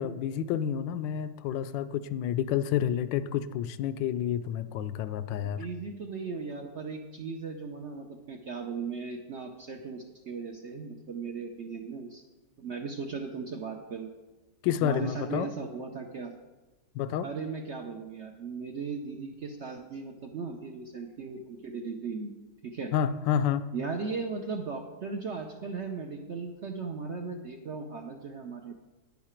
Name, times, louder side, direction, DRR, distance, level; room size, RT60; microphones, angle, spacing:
voice 1, 0.0-5.7 14.6-15.5 16.9-17.3 22.9-23.7, left 9 dB, 85° left, 13 dB, 1.3 m, -29 dB
voice 2, 5.4-12.2 12.6-14.1 14.8-16.3 17.2-22.3 22.6-22.9 23.7-28.7, right 4 dB, 60° right, 3 dB, 0.7 m, -37 dB
9.7 x 9.4 x 4.4 m, 1.2 s
omnidirectional pair, 1.9 m